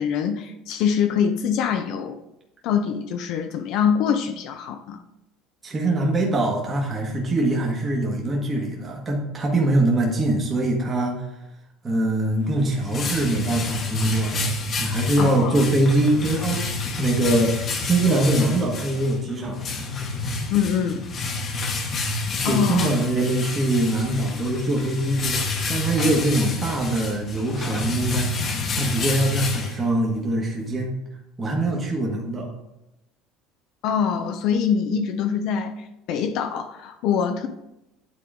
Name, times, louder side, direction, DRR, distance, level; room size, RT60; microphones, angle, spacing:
voice 1, 0.0-2.2 2.6-5.0 15.2-15.6 20.5-21.1 22.1-22.9 33.8-37.5, left 7 dB, 65° left, 7 dB, 0.5 m, -24 dB
voice 2, 5.6-11.3 11.8-14.5 14.8-16.7 17.0-19.6 22.4-28.3 28.8-30.9 31.4-32.5, right 1 dB, 25° right, -1 dB, 1.3 m, -23 dB
sound 1, 12.3-30.2, left 3 dB, 40° left, 1.0 m, -29 dB
9.5 x 3.8 x 3.6 m, 0.90 s
cardioid pair, 125°, 0 cm